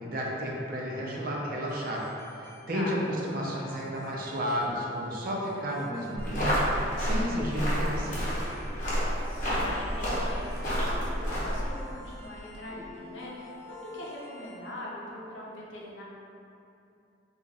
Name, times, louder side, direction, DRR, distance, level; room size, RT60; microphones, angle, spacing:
voice 1, 0.0-2.0 2.7-8.3, equal, 50° right, -2 dB, 0.5 m, -32 dB
sound 1, 1.7-14.6, left 1 dB, 10° left, 0.4 m, -49 dB
sound 2, 6.2-11.7, equal, 45° left, 0.9 m, -29 dB
voice 2, 9.2-16.0, left 1 dB, 75° left, -4 dB, 0.7 m, -42 dB
2.9 x 2.4 x 4.0 m, 2.7 s
head